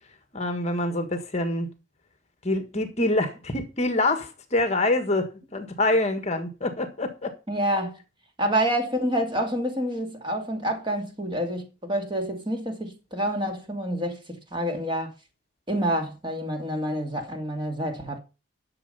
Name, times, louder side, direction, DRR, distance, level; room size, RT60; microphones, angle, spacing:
voice 1, 0.3-1.7 2.4-7.3, left 2 dB, 30° left, 1.5 m, -26 dB
voice 2, 7.5-8.0 8.4-15.1 15.7-18.2, right 1 dB, 25° right, 2.4 m, -28 dB
11.5 x 6.8 x 5.5 m
head